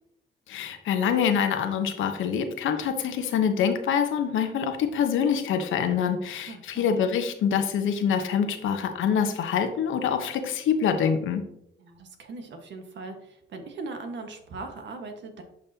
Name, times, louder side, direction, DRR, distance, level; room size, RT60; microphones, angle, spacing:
voice 1, 0.5-11.4, left 7 dB, 80° left, 7 dB, 1.0 m, -25 dB
voice 2, 6.5-6.9 11.8-15.4, right 3 dB, 65° right, 4 dB, 1.5 m, -39 dB
10.5 x 5.4 x 2.9 m, 0.77 s
cardioid pair, 90°, 20 cm